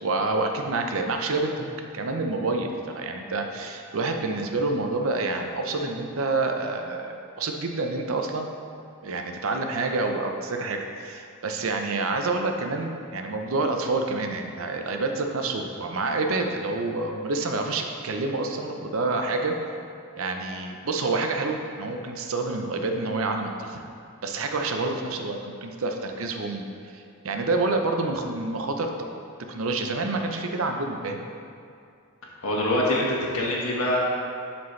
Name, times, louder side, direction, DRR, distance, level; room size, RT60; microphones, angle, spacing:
voice 1, 0.0-8.5 9.0-19.6 20.2-23.8 24.2-26.6 26.9-28.9 29.5-31.2, right 3 dB, 75° right, 4 dB, 0.6 m, -28 dB
voice 2, 32.4-34.0, left 1 dB, 85° left, -4 dB, 1.5 m, -24 dB
11.0 x 4.4 x 3.2 m, 2.4 s
head